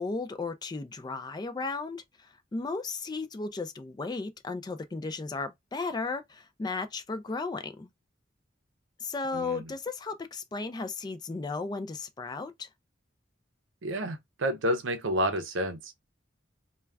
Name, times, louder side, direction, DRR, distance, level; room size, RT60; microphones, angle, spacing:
voice 1, 0.0-2.0 2.5-7.9 9.0-12.7, left 3 dB, 20° left, 0.3 m, -35 dB
voice 2, 9.3-9.7 13.8-16.0, equal, 85° right, 0.6 m, -30 dB
2.3 x 2.2 x 3.2 m
head